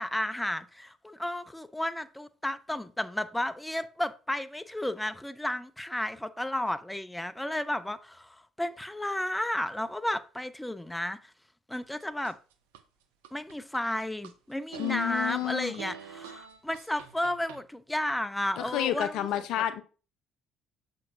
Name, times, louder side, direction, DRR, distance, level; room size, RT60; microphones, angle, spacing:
voice 1, 0.0-11.2 11.7-12.4 13.3-19.4, left 1 dB, 10° left, 0.6 m, -33 dB
sound 1, 11.8-12.8 13.2-14.3 14.7-17.6, right 7 dB, 75° right, 0.5 m, -45 dB
voice 2, 14.8-15.8 18.6-19.8, left 12 dB, 60° left, 0.5 m, -30 dB
7.0 x 5.2 x 2.7 m
figure-of-eight pair, 50°, 0 cm